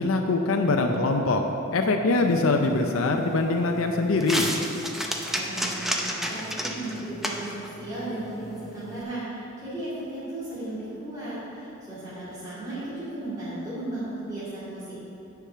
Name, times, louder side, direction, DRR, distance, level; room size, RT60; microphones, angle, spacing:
voice 1, 0.0-1.4 1.7-4.5, left 3 dB, 70° left, 3 dB, 0.6 m, -23 dB
sound 1, 2.1-9.0, equal, ahead, 0.6 m, -33 dB
voice 2, 5.3-15.1, right 1 dB, 20° right, -12 dB, 2.4 m, -35 dB
10.0 x 4.8 x 6.8 m, 2.9 s
head